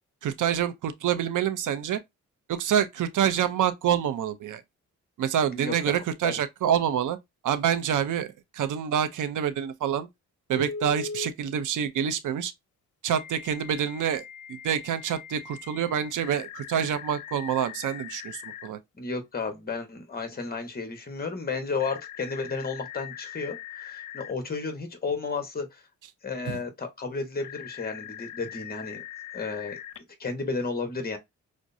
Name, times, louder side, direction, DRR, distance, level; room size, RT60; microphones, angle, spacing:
voice 1, 0.2-2.0 2.5-4.6 5.2-7.2 7.4-10.1 10.5-12.5 13.0-14.2 14.5-18.8 26.5-26.6, right 9 dB, 80° right, 0.7 m, -27 dB
voice 2, 5.5-6.3 19.0-25.8 26.2-29.0 29.3-29.8 30.2-31.2, left 4 dB, 30° left, 1.3 m, -33 dB
Telephone, 10.6-11.3 13.1-18.7 21.8-24.3 27.4-30.0, left 7 dB, 75° left, 0.6 m, -41 dB
6.1 x 2.2 x 2.7 m
cardioid pair, 95°, 31 cm